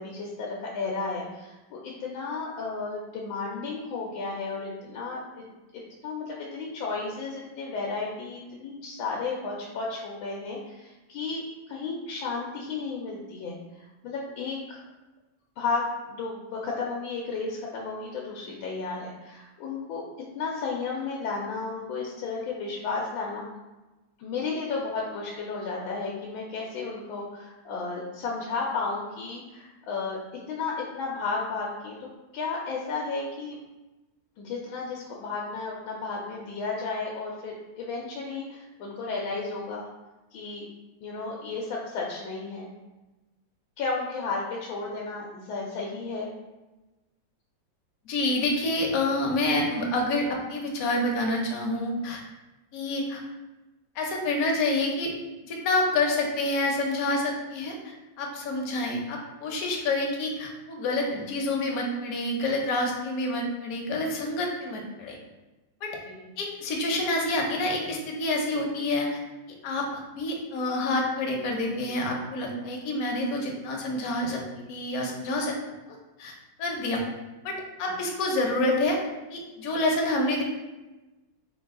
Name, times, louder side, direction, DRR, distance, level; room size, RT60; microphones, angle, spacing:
voice 1, 0.0-5.4 5.7-14.8 15.6-20.0 20.3-23.5 24.2-30.2 30.5-31.9 32.3-33.6 34.4-39.9 40.3-40.7 41.0-42.7 43.8-46.3 66.1-66.3, left 4 dB, 90° left, -3 dB, 1.4 m, -33 dB
voice 2, 48.1-52.2 52.7-53.2 54.0-55.1 55.4-65.2 65.8-66.0 66.4-69.2 69.6-74.4 74.7-75.6 76.2-76.3 76.6-77.0 77.4-79.0 79.3-80.4, left 2 dB, 60° left, 0 dB, 1.0 m, -28 dB
4.1 x 2.2 x 3.5 m, 1.1 s
omnidirectional pair, 2.1 m